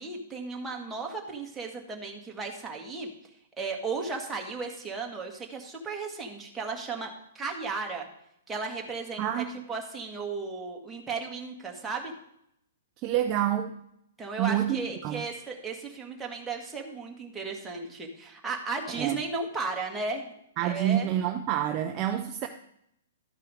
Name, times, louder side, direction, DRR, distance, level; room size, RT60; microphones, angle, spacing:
voice 1, 0.0-3.1 3.6-7.1 7.3-8.1 8.5-12.1 14.2-20.3 20.6-21.1, right 4 dB, 10° right, 0 dB, 1.7 m, -35 dB
voice 2, 9.2-9.6 13.0-13.8 14.4-15.2 18.9-19.2 20.6-22.5, right 11 dB, 30° right, 6 dB, 0.6 m, -28 dB
13.0 x 4.6 x 4.9 m, 0.74 s
hypercardioid pair, 135°, 0 cm